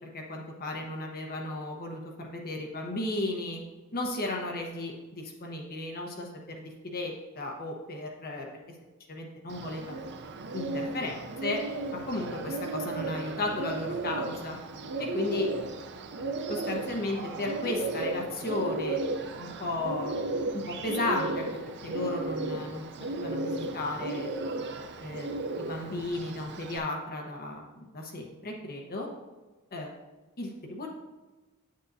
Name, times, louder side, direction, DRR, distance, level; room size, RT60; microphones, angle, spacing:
voice 1, 0.0-3.6 3.9-8.5 9.1-10.0 10.5-11.6 12.1-14.6 15.0-15.5 16.5-19.0 19.4-20.1 20.5-21.5 21.8-22.9 23.2-24.3 25.0-25.3 25.6-29.1 29.7-29.9 30.4-30.9, left 2 dB, 45° left, 0 dB, 1.0 m, -34 dB
Bird, 9.5-26.8, right 2 dB, 50° right, 0.5 m, -35 dB
9.6 x 6.6 x 2.7 m, 1.2 s
head